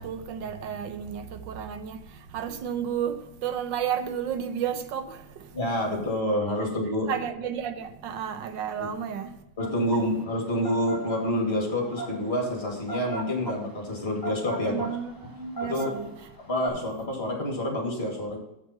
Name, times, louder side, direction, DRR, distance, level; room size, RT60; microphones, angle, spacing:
voice 1, 0.0-5.6 6.6-6.7 7.1-9.4 14.7-16.1, right 8 dB, 85° right, 1.5 m, -32 dB
voice 2, 5.5-7.1 8.8-8.9 9.6-14.9 15.6-15.9 16.5-18.4, left 1 dB, 35° left, 2.5 m, -28 dB
sound 1, 9.6-16.7, right 2 dB, 15° left, 0.8 m, -37 dB
7.5 x 6.1 x 5.7 m
omnidirectional pair, 1.9 m